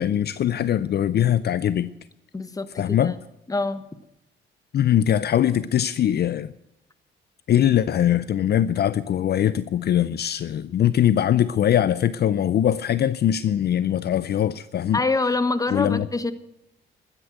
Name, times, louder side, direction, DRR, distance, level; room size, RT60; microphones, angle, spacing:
voice 1, 0.0-1.9 2.8-3.1 4.7-6.5 7.5-15.0 15.7-16.1, left 10 dB, 55° left, 0.6 m, -21 dB
voice 2, 2.3-3.2 3.5-3.8 14.9-16.3, left 3 dB, 15° left, 1.2 m, -25 dB
12.5 x 10.0 x 7.9 m
cardioid pair, 90°, 20 cm